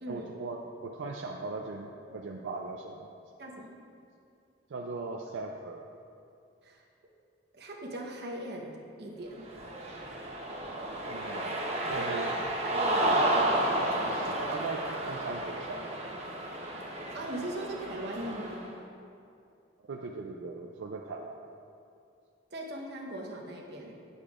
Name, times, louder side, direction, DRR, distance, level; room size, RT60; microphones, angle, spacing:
voice 1, 0.1-3.1 4.7-5.9 11.1-11.6 11.9-12.3 13.8-16.0 19.9-21.4, right 3 dB, 85° right, 1 dB, 0.4 m, -39 dB
voice 2, 3.4-3.8 6.6-6.8 7.5-9.5 12.0-12.1 17.1-18.7 22.5-23.9, right 1 dB, 60° right, 0 dB, 0.9 m, -39 dB
Cheering, 9.4-18.6, right 1 dB, 35° right, 0.8 m, -31 dB
9.6 x 6.7 x 2.4 m, 2.5 s
head